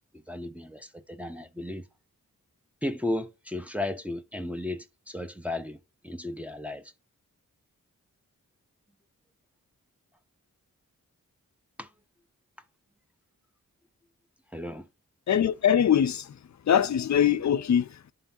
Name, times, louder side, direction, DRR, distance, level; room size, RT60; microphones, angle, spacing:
voice 1, 0.3-1.8 2.8-5.8 6.0-6.9 11.8-11.9 14.5-14.9, left 1 dB, 5° right, 0.7 m, -34 dB
voice 2, 15.3-16.3 16.7-18.1, left 9 dB, 55° left, 0.5 m, -22 dB
11.5 x 3.8 x 2.7 m
cardioid pair, 45°, 34 cm